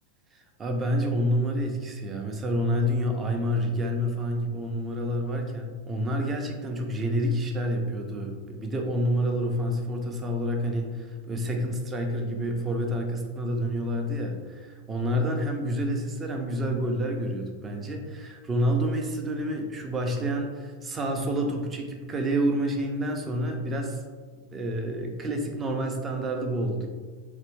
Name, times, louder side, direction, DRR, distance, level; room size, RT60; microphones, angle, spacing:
voice 1, 0.6-24.0 24.5-26.9, equal, 20° right, 3 dB, 0.5 m, -28 dB
3.3 x 2.6 x 3.0 m, 1.5 s
figure-of-eight pair, 90°, 0 cm